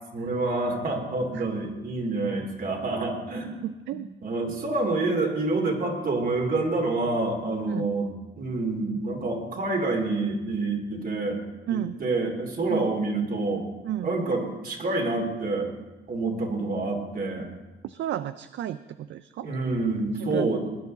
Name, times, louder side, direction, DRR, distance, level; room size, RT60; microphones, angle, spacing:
voice 1, 0.1-11.4 11.7-13.6 14.0-15.7 16.1-17.5 19.4-20.6, right 2 dB, 45° right, 3 dB, 2.7 m, -27 dB
voice 2, 3.6-4.1 7.7-7.9 11.7-12.0 12.7-12.9 13.8-14.1 17.8-19.5 20.3-20.6, right 12 dB, 65° right, 12 dB, 0.5 m, -32 dB
20.0 x 9.8 x 4.0 m, 1.1 s
cardioid pair, 90°, 20 cm